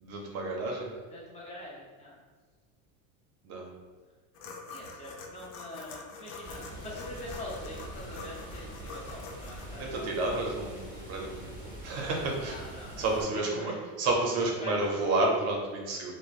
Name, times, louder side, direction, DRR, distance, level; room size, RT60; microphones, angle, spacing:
voice 1, 0.0-0.9 3.4-3.7 9.8-12.6 13.0-13.7 14.0-16.1, right 2 dB, 40° right, 0 dB, 0.6 m, -30 dB
voice 2, 1.1-2.1 4.7-10.1 12.4-13.8 14.6-15.0, left 1 dB, 20° left, -6 dB, 0.6 m, -43 dB
sound 1, 4.3-9.7, left 4 dB, 65° left, 0.5 m, -45 dB
Water, 6.4-13.2, right 1 dB, 10° right, 0.8 m, -44 dB
2.9 x 2.1 x 2.4 m, 1.5 s
supercardioid pair, 140°, 38 cm